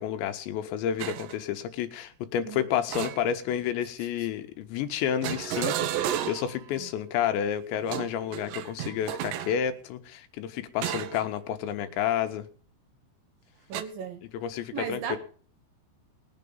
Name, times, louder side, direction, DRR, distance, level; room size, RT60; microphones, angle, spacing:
voice 1, 0.0-12.5 14.3-15.2, left 9 dB, 85° left, 8 dB, 3.3 m, -30 dB
sound 1, 1.0-1.4 2.9-3.7 5.2-6.6 7.8-9.6 10.8-11.3 11.7-11.9 13.7-13.8, right 11 dB, 80° right, 3.0 m, -32 dB
voice 2, 13.7-14.2 14.7-15.2, right 6 dB, 65° right, 6 dB, 2.8 m, -36 dB
20.0 x 7.5 x 5.4 m, 0.43 s
omnidirectional pair, 5.1 m